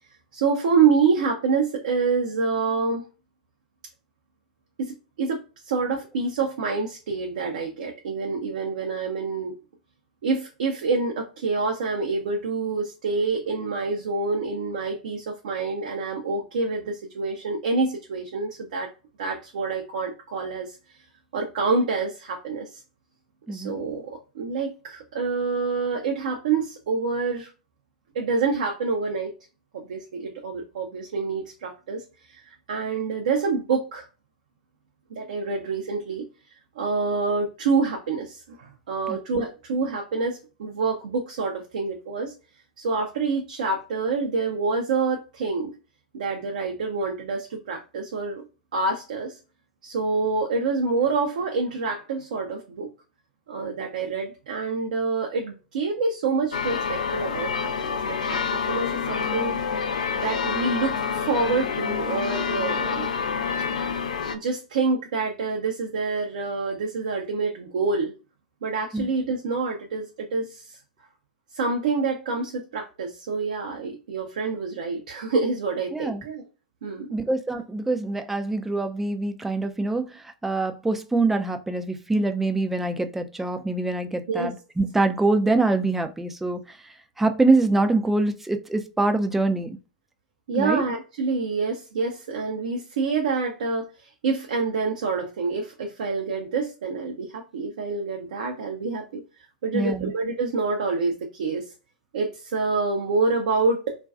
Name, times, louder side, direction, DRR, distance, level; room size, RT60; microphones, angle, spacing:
voice 1, 0.3-3.0 4.8-9.5 10.2-18.9 19.2-20.8 21.3-22.8 23.5-24.0 24.3-27.5 28.1-29.3 29.7-32.0 32.3-34.1 35.1-36.3 36.8-42.3 42.8-45.7 46.1-48.4 48.7-49.4 49.8-52.9 53.5-59.5 60.2-63.1 64.3-68.1 68.6-70.8 71.5-76.4 76.8-77.1 84.3-84.5 90.5-99.2 99.6-101.7 102.1-104.0, right 4 dB, 65° right, 2 dB, 0.5 m, -27 dB
sound 1, 56.5-64.4, left 6 dB, 70° left, 0.4 m, -27 dB
voice 2, 75.9-76.2 77.1-86.6 87.2-89.7 90.6-90.8 99.7-100.1, right 2 dB, 5° right, 7 dB, 0.3 m, -24 dB
2.4 x 2.2 x 2.3 m, 0.32 s
figure-of-eight pair, 95°, 4 cm